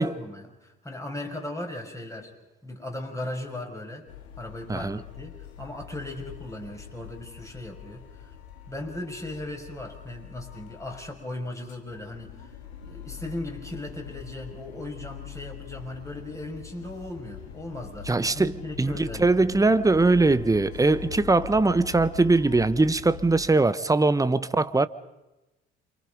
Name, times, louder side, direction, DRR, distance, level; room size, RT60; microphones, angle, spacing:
voice 1, 0.0-2.3 2.6-4.1 4.4-8.3 8.7-12.5 12.9-19.5, left 1 dB, 10° left, 6.4 m, -37 dB
sound 1, 4.1-11.2 11.5-23.5, left 9 dB, 85° left, 1.9 m, -43 dB
voice 2, 4.7-5.0 18.1-24.9, right 3 dB, 10° right, 1.0 m, -21 dB
28.5 x 25.0 x 5.3 m
hypercardioid pair, 55°, 32 cm